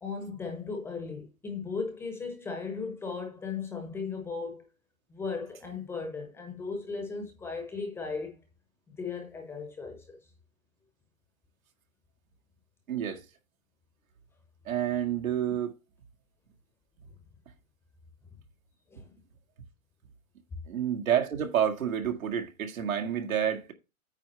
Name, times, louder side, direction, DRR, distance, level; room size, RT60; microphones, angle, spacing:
voice 1, 0.0-4.6 5.1-8.4 9.0-10.2 18.9-19.1, left 4 dB, 5° left, 0.9 m, -36 dB
voice 2, 12.9-13.2 14.7-15.8 20.7-23.7, right 9 dB, 75° right, 2.0 m, -29 dB
8.9 x 3.5 x 6.6 m
hypercardioid pair, 160°, 41 cm